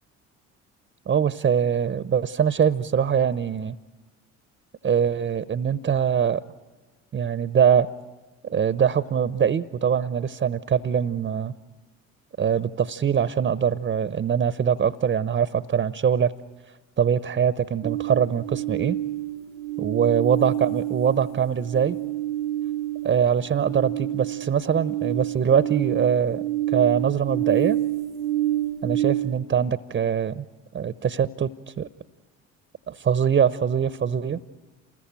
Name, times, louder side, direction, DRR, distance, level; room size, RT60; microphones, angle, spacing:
voice 1, 1.1-3.8 4.8-6.4 7.1-7.9 8.4-11.5 12.4-16.3 17.0-19.0 19.8-22.0 23.0-27.8 28.8-30.4 30.7-31.5 31.8-31.9 32.9-34.4, right 8 dB, 25° right, 15 dB, 0.8 m, -23 dB
sound 1, 17.8-29.4, right 13 dB, 85° right, 1.0 m, -28 dB
28.0 x 21.0 x 8.9 m, 1.2 s
figure-of-eight pair, 60°, 39 cm